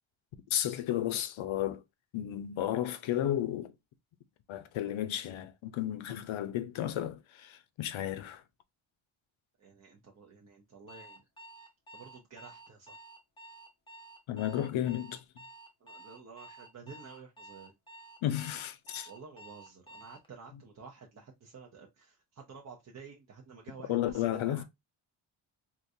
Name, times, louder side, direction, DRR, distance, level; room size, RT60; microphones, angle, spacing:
voice 1, 0.5-1.8 2.1-3.7 4.5-8.4 14.3-15.2 18.2-19.1 23.9-24.6, left 12 dB, 75° left, 0.6 m, -33 dB
voice 2, 9.6-11.3 11.9-13.0 15.8-17.8 19.0-24.6, right 5 dB, 35° right, 0.6 m, -51 dB
Alarm, 10.9-20.3, right 2 dB, 10° left, 0.6 m, -52 dB
3.7 x 2.4 x 2.6 m
wide cardioid pair, 130°, 48 cm